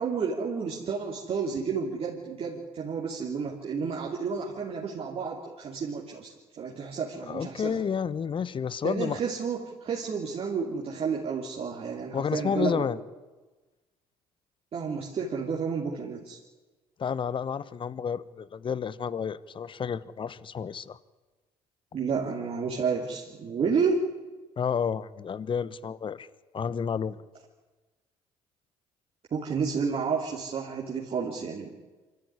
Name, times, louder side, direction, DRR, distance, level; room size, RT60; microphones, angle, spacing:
voice 1, 0.0-7.8 8.8-12.9 14.7-16.4 21.9-24.0 29.3-31.7, right 5 dB, 45° right, -3 dB, 3.3 m, -31 dB
voice 2, 7.3-9.2 12.1-13.0 17.0-21.0 24.6-26.3 26.5-27.2, left 7 dB, 40° left, 18 dB, 1.1 m, -30 dB
24.5 x 14.5 x 9.9 m, 1.2 s
hypercardioid pair, 65°, 13 cm